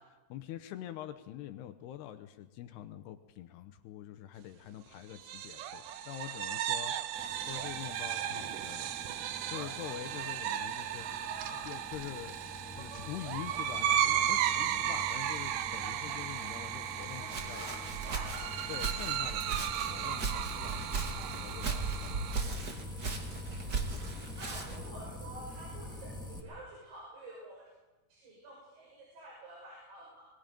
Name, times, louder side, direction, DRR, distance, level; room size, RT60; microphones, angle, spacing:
voice 1, 0.3-9.0 9.5-11.1 11.6-12.4 12.7-17.7 18.7-22.6, left 12 dB, 80° left, 9 dB, 2.8 m, -45 dB
sound 1, 5.1-22.4, right 10 dB, 85° right, 1.8 m, -35 dB
sound 2, 7.1-26.4, left 2 dB, ahead, 2.3 m, -46 dB
voice 2, 11.0-11.7 17.2-18.4 24.4-26.1 26.4-27.7 28.1-30.2, right 1 dB, 70° right, -4 dB, 7.8 m, -48 dB
Walk footsteps, 17.0-24.9, right 4 dB, 45° right, 1.3 m, -38 dB
25.5 x 23.0 x 5.2 m, 1.1 s
omnidirectional pair, 4.9 m